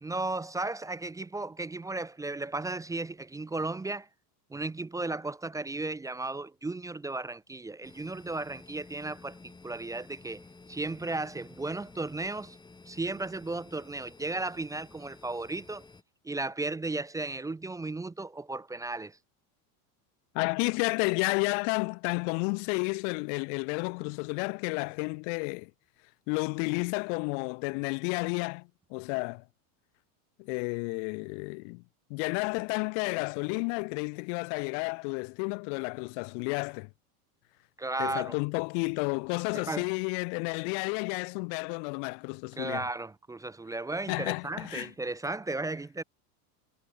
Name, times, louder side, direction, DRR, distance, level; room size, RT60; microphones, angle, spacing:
voice 1, 0.0-4.1 4.5-12.6 12.9-15.9 16.2-19.2 37.8-38.4 39.5-39.9 42.6-46.0, right 2 dB, 5° right, 0.9 m, -35 dB
sound 1, 7.8-16.0, left 3 dB, 10° left, 5.4 m, -53 dB
voice 2, 20.3-25.7 26.3-28.6 28.9-29.4 30.4-31.8 32.1-36.9 38.0-42.8 44.1-44.9, left 40 dB or more, 50° left, 0.8 m, -31 dB
supercardioid pair, 155°, 46 cm